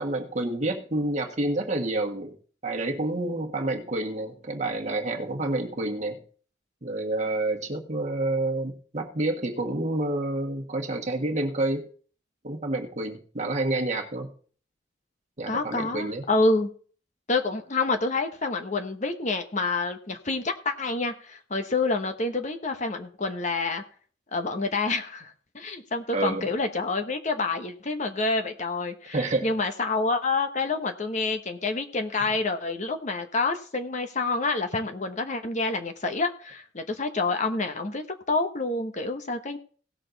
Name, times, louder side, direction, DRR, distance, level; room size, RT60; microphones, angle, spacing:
voice 1, 0.0-2.4 2.6-6.2 6.8-11.8 12.4-14.3 15.4-16.2 26.1-26.5 29.1-29.5, right 2 dB, 40° right, 2 dB, 1.7 m, -28 dB
voice 2, 15.5-16.7 17.3-23.8 24.3-39.6, left 3 dB, 40° left, 6 dB, 1.0 m, -28 dB
17.5 x 6.7 x 4.0 m, 0.43 s
head